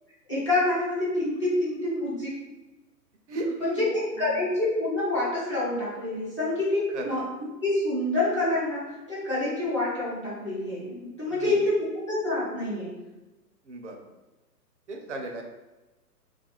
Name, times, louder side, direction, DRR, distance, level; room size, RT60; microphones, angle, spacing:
voice 1, 0.3-2.4 3.6-7.3 7.6-12.9, left 2 dB, 20° left, -10 dB, 0.4 m, -27 dB
voice 2, 3.3-3.8 6.9-7.2 11.3-11.5 13.7-14.0 14.9-15.4, right 2 dB, 50° right, 2 dB, 0.5 m, -34 dB
2.3 x 2.2 x 2.9 m, 1.1 s
hypercardioid pair, 145°, 49 cm